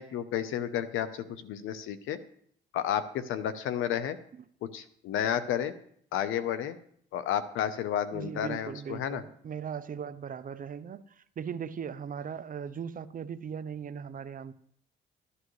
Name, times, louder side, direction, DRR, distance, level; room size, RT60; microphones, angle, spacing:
voice 1, 0.0-2.2 2.7-4.2 4.6-5.7 6.1-6.8 7.1-9.2, left 10 dB, 90° left, 0.8 m, -31 dB
voice 2, 8.1-14.5, right 7 dB, 45° right, 0.6 m, -38 dB
12.5 x 11.0 x 3.2 m
cardioid pair, 90°, 20 cm